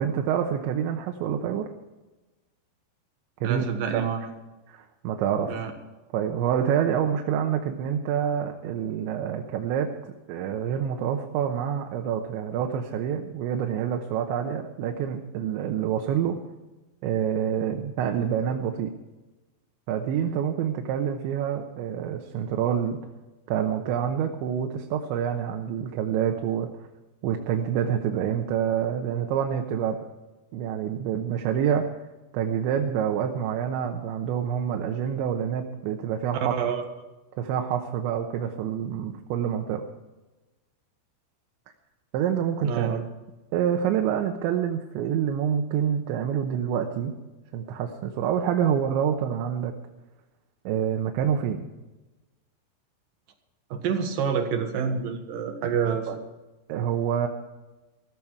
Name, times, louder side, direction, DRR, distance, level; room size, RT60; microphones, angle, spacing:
voice 1, 0.0-1.7 3.4-3.6 3.9-4.1 4.7-5.7 6.1-9.9 10.3-16.4 17.0-18.9 19.9-23.0 23.5-26.7 27.2-30.0 30.5-31.9 32.3-36.5 37.4-39.8 42.1-43.0 43.5-47.2 47.5-49.7 50.7-51.6 56.1-56.2 56.7-57.3, right 8 dB, 80° right, 3 dB, 3.3 m, -27 dB
voice 2, 3.4-4.3 5.5-5.7 36.5-36.9 42.6-43.1 53.7-56.1, right 7 dB, 60° right, 5 dB, 2.6 m, -27 dB
15.0 x 14.5 x 4.7 m, 1.1 s
omnidirectional pair, 5.3 m